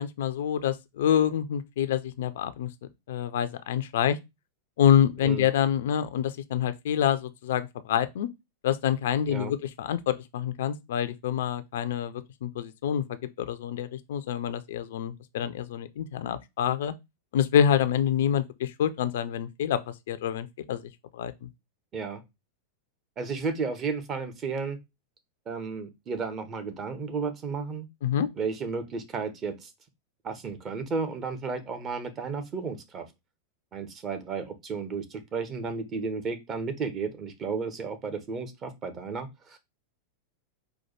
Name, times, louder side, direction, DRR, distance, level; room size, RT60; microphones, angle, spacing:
voice 1, 0.0-2.7 3.1-4.2 4.8-8.3 8.6-16.9 17.3-21.5 28.0-28.3, left 9 dB, 55° left, 0.4 m, -27 dB
voice 2, 23.2-24.8 25.5-27.9 28.4-29.7 30.2-33.1 33.7-39.6, right 5 dB, 30° right, 0.9 m, -33 dB
4.4 x 2.3 x 4.3 m
figure-of-eight pair, 90°, 0 cm